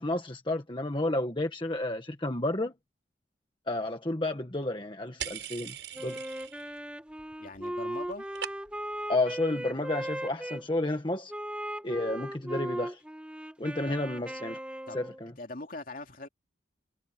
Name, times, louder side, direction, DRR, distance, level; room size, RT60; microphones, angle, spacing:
voice 1, 0.0-2.7 3.7-5.7 6.0-6.2 9.1-11.3 11.8-13.0 13.6-14.6 14.9-15.3, left 2 dB, 25° left, 1.5 m, -31 dB
sound 1, 5.2-6.8 7.1-7.6 7.9-9.0, right 9 dB, 75° right, 6.3 m, -41 dB
Wind instrument woodwind instrument, 5.9-10.6 11.3-15.2, equal, 5° right, 2.2 m, -38 dB
voice 2, 7.4-8.2 13.9-14.0 14.9-15.0 15.4-16.3, left 2 dB, 50° left, 3.0 m, -41 dB
head